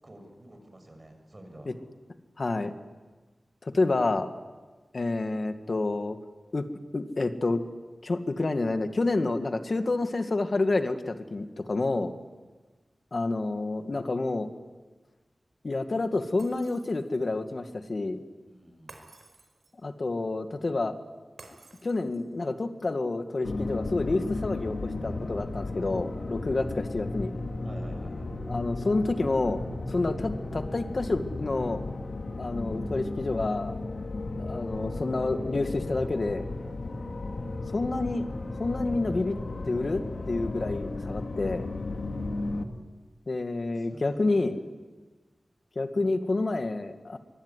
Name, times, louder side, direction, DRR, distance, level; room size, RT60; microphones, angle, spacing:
voice 1, 0.0-1.7 11.8-12.1 18.5-19.1 25.9-26.6 27.6-28.3 43.7-44.5, right 1 dB, 35° right, 5 dB, 6.8 m, -50 dB
voice 2, 2.4-2.7 3.6-4.3 4.9-6.2 6.5-6.6 6.9-7.6 8.0-12.1 13.1-14.5 15.6-18.2 19.8-20.9 21.8-27.3 28.5-29.6 29.9-31.8 32.4-33.7 34.4-36.4 37.7-38.3 38.6-39.4 39.6-41.7 43.3-44.6 45.8-47.2, left 2 dB, 55° left, 7 dB, 1.9 m, -28 dB
Shatter, 16.4-17.3 18.9-19.9 21.4-22.4, right 3 dB, 80° right, 5.0 m, -52 dB
sound 1, 23.4-42.6, left 2 dB, 75° left, 2.2 m, -34 dB
25.0 x 23.5 x 9.8 m, 1.3 s
wide cardioid pair, 95°, 0 cm